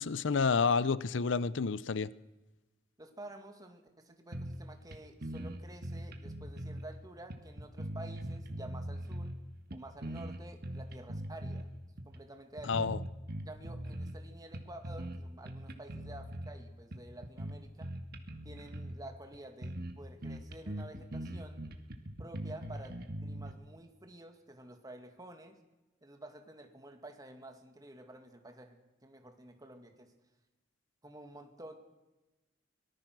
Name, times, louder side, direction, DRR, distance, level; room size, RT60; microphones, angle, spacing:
voice 1, 0.0-2.1 12.7-13.0, left 5 dB, 85° left, 0.6 m, -29 dB
voice 2, 3.0-9.3 9.7-11.7 12.0-12.9 13.4-17.9 18.4-21.7 22.2-25.6 26.0-30.1 31.0-31.8, right 1 dB, 20° right, 2.2 m, -50 dB
sound 1, 4.3-4.7 4.9-5.0 5.2-6.9 7.3-9.4 9.7-11.6 12.0-12.2 12.6-14.2 14.5-15.2 15.5-16.5 16.9-19.0 19.3-19.4 19.6-19.9 20.2-23.5, right 1 dB, 55° right, 1.9 m, -41 dB
24.0 x 19.0 x 6.1 m
head